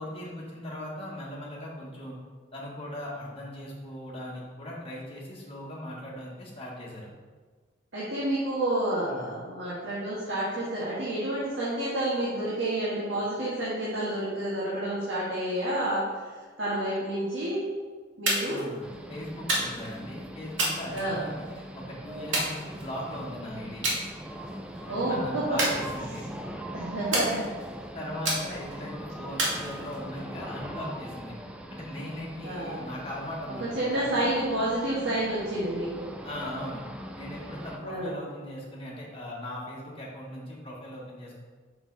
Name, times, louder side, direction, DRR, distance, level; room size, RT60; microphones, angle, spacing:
voice 1, 0.0-2.2 2.5-7.1 9.1-9.3 18.4-21.5 21.7-23.9 24.9-26.3 27.3-27.5 27.9-31.3 31.7-33.6 33.9-34.0 36.2-36.8 37.2-41.4, left 1 dB, 30° left, -4 dB, 1.6 m, -39 dB
voice 2, 7.9-16.1 16.6-17.6 18.2-18.6 20.9-21.2 24.9-25.6 26.7-27.4 32.4-32.8 33.6-36.1 37.8-38.1, right 1 dB, 70° right, -9 dB, 1.6 m, -29 dB
sound 1, 18.3-18.7 19.5-20.0 20.6-21.5 22.3-23.1 23.8-24.0 24.4-24.8 25.6-26.4 27.1-27.7 28.2-28.8 29.4-30.2, right 1 dB, 90° right, 1.9 m, -30 dB
sound 2, 18.8-37.8, equal, 5° right, 0.4 m, -41 dB
5.8 x 5.4 x 4.0 m, 1.5 s
head